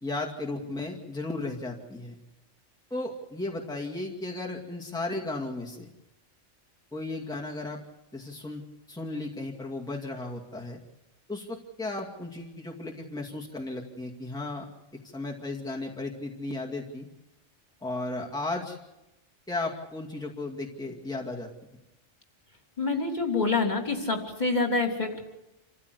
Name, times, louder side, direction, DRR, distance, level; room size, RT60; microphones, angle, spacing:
voice 1, 0.0-2.1 2.9-5.9 6.9-7.8 8.1-8.6 8.9-10.8 11.3-14.7 15.1-17.1 17.8-18.8 19.5-21.5, left 2 dB, 5° left, -2 dB, 2.2 m, -35 dB
voice 2, 22.8-25.2, left 3 dB, 35° left, 2 dB, 3.4 m, -27 dB
27.5 x 15.0 x 8.1 m, 0.94 s
omnidirectional pair, 1.3 m